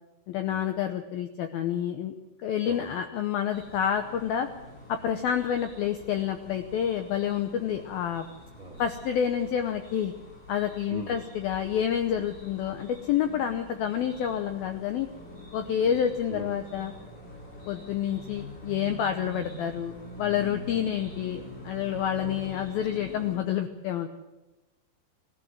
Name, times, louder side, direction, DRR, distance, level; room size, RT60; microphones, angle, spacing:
voice 1, 0.3-2.1 2.4-4.5 4.9-8.2 8.8-10.1 10.5-15.1 15.5-16.9 17.7-24.1, left 9 dB, 85° left, 7 dB, 2.1 m, -28 dB
sound 1, 3.5-23.4, equal, 20° left, 5.7 m, -45 dB
voice 2, 10.9-11.2 15.8-16.0 16.3-16.5 20.7-20.8 22.2-22.4, right 3 dB, 40° right, 0 dB, 3.3 m, -42 dB
20.0 x 14.0 x 9.4 m, 1.1 s
omnidirectional pair, 5.5 m